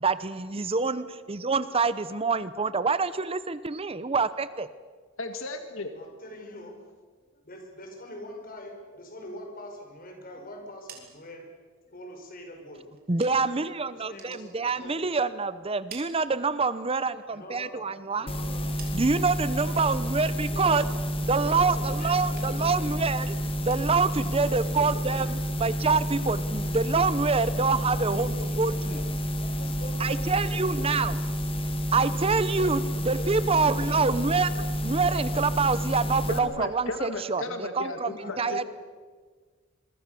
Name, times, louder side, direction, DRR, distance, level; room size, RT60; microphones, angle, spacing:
voice 1, 0.0-4.7 13.1-18.3 18.9-20.8 21.3-29.0 30.0-31.1 31.9-32.8 33.1-38.6, right 4 dB, 30° right, 14 dB, 0.7 m, -26 dB
voice 2, 5.2-5.9 36.3-38.7, left 2 dB, 75° left, 7 dB, 1.9 m, -35 dB
voice 3, 5.9-6.9 7.3-11.5 11.8-12.8 13.9-15.1 17.3-18.7 19.7-20.1 20.5-20.9 21.4-22.8 24.4-25.2 27.9-31.0 32.6-32.8 33.2-34.1 38.2-38.7, left 1 dB, 45° left, 3 dB, 5.6 m, -44 dB
sound 1, 10.6-13.7 14.0-15.3 15.6-16.9 17.3-19.4 19.8-20.3 20.6-21.9 22.2-22.8 23.0-25.9, right 6 dB, 45° right, 4.3 m, -53 dB
sound 2, 18.3-36.4, equal, 25° left, 2.2 m, -30 dB
26.5 x 23.5 x 6.9 m, 1.5 s
head